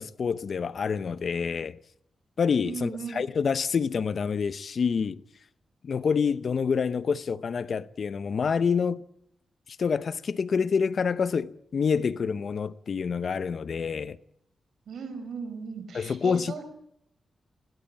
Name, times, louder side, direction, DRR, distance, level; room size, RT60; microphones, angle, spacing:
voice 1, 0.0-1.8 2.4-5.2 5.8-9.0 9.8-14.2 15.9-16.6, left 6 dB, 60° left, 0.8 m, -27 dB
voice 2, 2.6-3.2 14.9-16.6, right 5 dB, 80° right, 5.0 m, -37 dB
21.0 x 19.5 x 8.7 m
cardioid pair, 75°, 0 cm